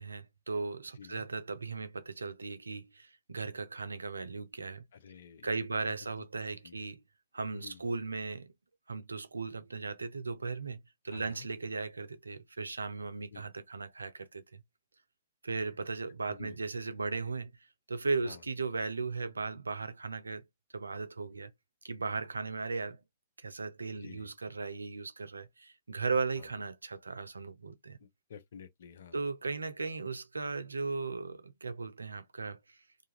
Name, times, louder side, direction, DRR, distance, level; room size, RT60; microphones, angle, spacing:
voice 1, 0.0-4.8 5.4-7.0 7.3-8.5 8.9-14.6 15.4-17.5 17.9-20.4 20.7-21.5 21.8-23.0 23.4-28.0 29.1-32.6, right 4 dB, 90° right, 0.4 m, -37 dB
voice 2, 1.0-1.3 4.9-5.6 6.6-6.8 7.5-7.8 11.1-11.5 13.3-13.4 16.3-16.6 18.2-18.4 24.0-24.3 26.4-26.5 28.0-29.2, left 7 dB, 70° left, 0.6 m, -50 dB
2.5 x 2.3 x 2.8 m
hypercardioid pair, 110°, 0 cm